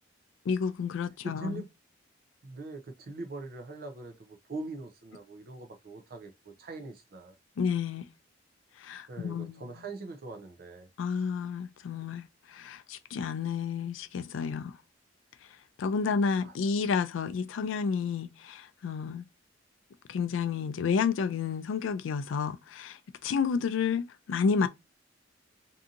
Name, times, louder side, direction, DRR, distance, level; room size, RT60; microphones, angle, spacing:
voice 1, 0.5-1.6 7.6-8.1 8.8-9.6 11.0-14.8 15.8-19.3 20.1-24.7, left 6 dB, 75° left, 0.3 m, -30 dB
voice 2, 1.2-1.7 2.4-7.4 9.1-10.9 16.4-16.5, right 2 dB, 50° right, 0.5 m, -42 dB
2.7 x 2.6 x 2.4 m
head